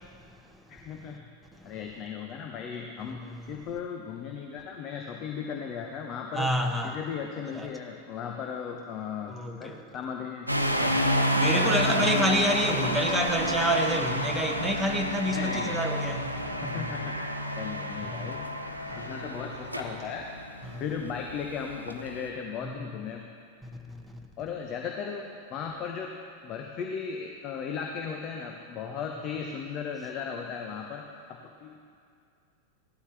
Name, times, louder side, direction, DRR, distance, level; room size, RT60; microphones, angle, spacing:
voice 1, 0.7-1.2 1.6-3.2 3.5-6.5 6.8-10.5 10.8-11.0 11.5-12.3 15.3-16.1 16.6-18.5 19.0-20.3 20.8-23.2 24.4-26.1 26.4-31.0 31.3-31.8, left 6 dB, 35° left, 1.0 m, -36 dB
voice 2, 3.1-3.4 6.3-7.0 7.5-7.7 9.3-9.9 11.4-16.9 18.1-18.3 18.9-19.1 20.6-20.8 22.6-22.7 23.6-24.2, equal, ahead, 1.1 m, -29 dB
sound 1, 10.5-22.3, equal, 90° right, 0.8 m, -29 dB
17.0 x 13.0 x 3.4 m
figure-of-eight pair, 90°, 0 cm